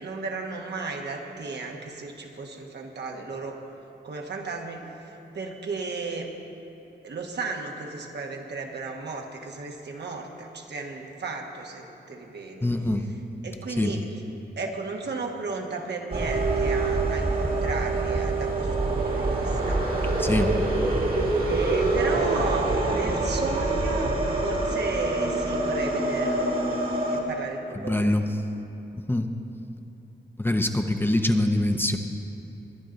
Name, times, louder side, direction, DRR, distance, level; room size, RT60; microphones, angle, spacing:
voice 1, 0.0-3.6 4.0-4.8 5.3-6.3 7.0-12.7 13.4-14.0 14.6-19.9 21.5-26.8 27.1-28.1, right 3 dB, 70° right, 2 dB, 1.4 m, -34 dB
voice 2, 12.6-13.1 13.8-13.9 20.2-20.5 27.7-28.2 28.9-29.3 30.4-32.0, left 1 dB, 10° left, 5 dB, 0.7 m, -24 dB
sound 1, 16.1-27.2, right 2 dB, 55° right, 1.9 m, -25 dB
22.0 x 9.7 x 3.9 m, 2.9 s
wide cardioid pair, 105°, 18 cm